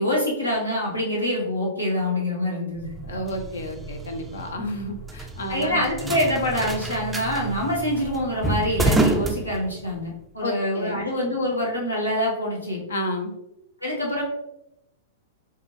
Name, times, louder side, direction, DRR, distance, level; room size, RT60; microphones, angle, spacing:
voice 1, 0.0-2.9 5.5-12.8 13.8-14.2, left 1 dB, 85° left, -4 dB, 1.1 m, -25 dB
sound 1, 2.8-10.1, right 2 dB, 10° right, 0.3 m, -29 dB
voice 2, 3.0-5.8 10.4-11.0 12.9-13.3, left 1 dB, 65° left, 4 dB, 0.6 m, -31 dB
4.9 x 2.3 x 2.9 m, 0.84 s
figure-of-eight pair, 100°, 0 cm